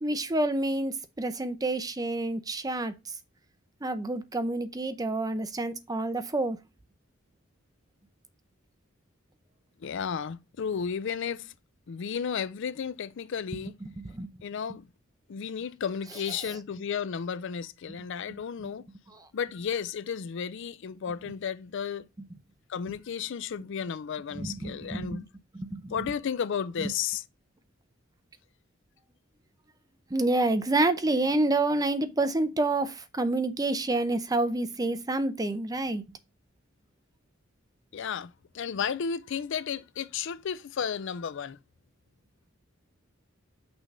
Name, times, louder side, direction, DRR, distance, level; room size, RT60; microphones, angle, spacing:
voice 1, 0.0-2.9 3.8-6.6 13.8-14.3 19.1-19.3 24.3-25.3 25.5-25.9 26.8-26.9 30.1-36.2, right 2 dB, 20° right, 0.6 m, -28 dB
voice 2, 9.8-11.5 11.9-13.7 14.4-14.9 15.3-18.9 19.3-22.0 22.7-25.3 25.9-27.2 37.9-41.6, left 7 dB, 65° left, 0.4 m, -33 dB
6.1 x 3.4 x 5.2 m
head